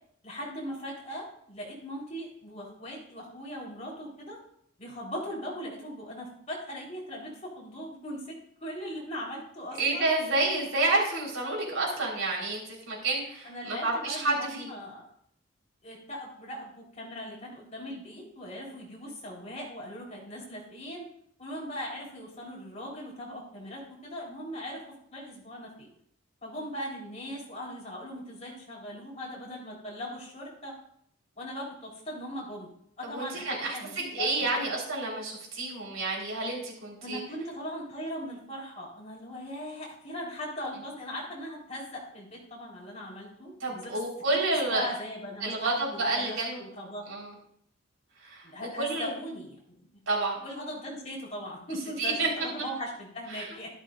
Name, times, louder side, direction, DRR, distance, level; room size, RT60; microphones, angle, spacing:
voice 1, 0.2-4.4 4.8-8.3 8.6-10.1 13.4-15.1 15.8-21.1 21.4-24.8 25.1-25.9 26.4-30.7 31.4-32.7 33.0-33.4 33.7-34.7 37.0-44.0 44.3-44.4 44.7-47.1 48.4-49.8 50.4-53.7, equal, 35° left, -4 dB, 4.3 m, -39 dB
voice 2, 9.8-14.7 33.0-37.2 43.6-44.9 45.4-46.6 47.1-47.3 48.2-49.1 50.1-50.4 52.0-52.3 52.6-52.7 53.3-53.5, right 2 dB, 80° right, -3 dB, 4.6 m, -29 dB
12.5 x 12.0 x 2.6 m, 0.68 s
head